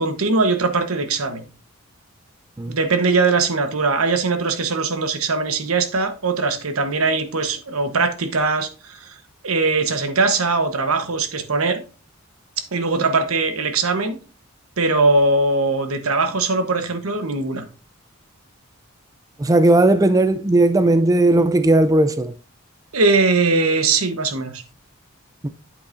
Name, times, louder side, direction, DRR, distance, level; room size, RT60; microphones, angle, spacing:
voice 1, 0.0-1.4 2.7-9.1 9.4-11.8 12.7-14.2 14.8-17.6 22.9-24.6, right 3 dB, 90° right, 1.1 m, -20 dB
voice 2, 19.4-22.3 25.4-25.5, right 2 dB, 15° right, 0.4 m, -16 dB
8.4 x 8.0 x 2.6 m
head